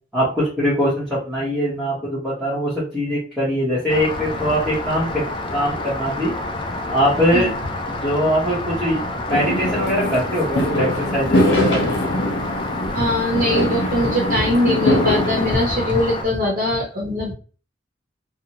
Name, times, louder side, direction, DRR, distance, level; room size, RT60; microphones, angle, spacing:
voice 1, 0.1-5.2 5.5-6.3 6.9-7.5 8.0-9.0 9.3-12.0, equal, ahead, -10 dB, 0.8 m, -22 dB
Rain, 3.9-16.2, left 2 dB, 25° left, 0.3 m, -28 dB
Fireworks, 9.3-15.5, left 1 dB, 75° left, 0.9 m, -22 dB
voice 2, 12.9-17.3, left 1 dB, 45° right, -2 dB, 0.7 m, -21 dB
2.6 x 2.0 x 2.8 m, 0.38 s
head